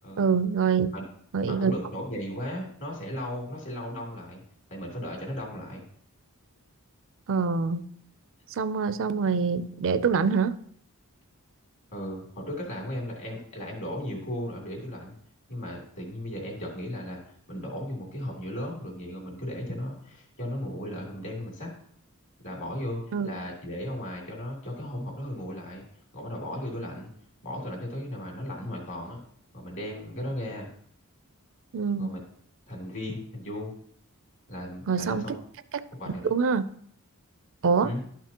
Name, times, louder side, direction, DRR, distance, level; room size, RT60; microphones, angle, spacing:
voice 1, 0.2-0.9 1.3-1.7 7.3-7.8 8.6-10.6 23.1-23.3 31.7-32.1 34.9-35.4 36.3-36.7 37.6-37.9, right 5 dB, 60° right, 13 dB, 0.4 m, -25 dB
voice 2, 1.5-4.4 4.7-5.8 11.9-15.2 15.5-17.2 17.5-21.7 22.4-25.8 26.1-27.1 27.4-29.2 29.5-30.7 32.0-32.2 32.7-33.7 34.5-35.3 36.0-36.2 37.8-38.0, left 1 dB, 60° left, -1 dB, 2.9 m, -36 dB
12.0 x 5.9 x 2.9 m, 0.63 s
head